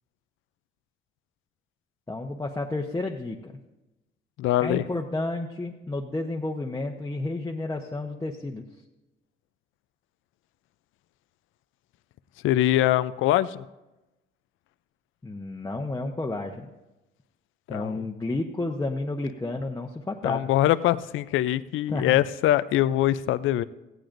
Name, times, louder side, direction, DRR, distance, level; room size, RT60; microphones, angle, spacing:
voice 1, 2.1-3.5 4.6-8.6 15.2-16.7 17.7-20.4 21.9-22.2, left 2 dB, 15° left, -1 dB, 0.9 m, -31 dB
voice 2, 4.4-4.8 12.4-13.6 17.7-18.0 20.2-23.6, left 14 dB, 85° left, 16 dB, 0.5 m, -23 dB
17.0 x 15.0 x 2.6 m, 1.0 s
cardioid pair, 90°, 20 cm